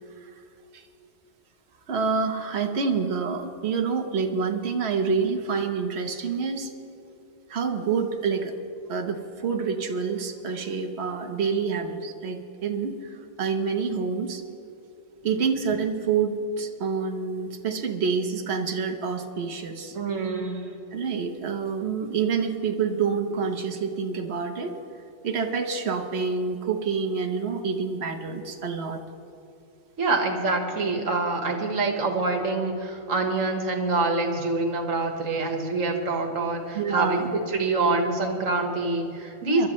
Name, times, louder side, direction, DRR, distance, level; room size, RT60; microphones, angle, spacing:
voice 1, 1.9-6.7 7.5-8.5 8.9-14.4 15.2-20.0 20.9-24.8 25.2-29.0 36.7-37.3 39.4-39.7, right 5 dB, 55° right, 4 dB, 1.3 m, -27 dB
voice 2, 19.9-20.6 30.0-39.7, right 3 dB, 80° right, 3 dB, 1.8 m, -26 dB
23.5 x 12.0 x 3.1 m, 2.7 s
omnidirectional pair, 1.3 m